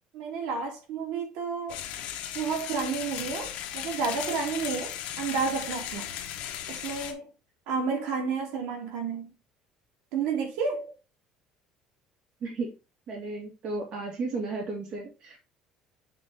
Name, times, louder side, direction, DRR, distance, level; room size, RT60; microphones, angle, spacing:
voice 1, 0.1-1.8 2.3-6.1 6.7-7.3 7.7-9.3 10.1-10.9, right 5 dB, 85° right, 2.6 m, -31 dB
sound 1, 1.7-7.1, left 10 dB, 55° left, 1.2 m, -36 dB
voice 2, 12.4-12.7 13.1-15.4, right 3 dB, 40° right, 2.8 m, -34 dB
7.7 x 4.2 x 3.7 m
cardioid pair, 180°, 2 cm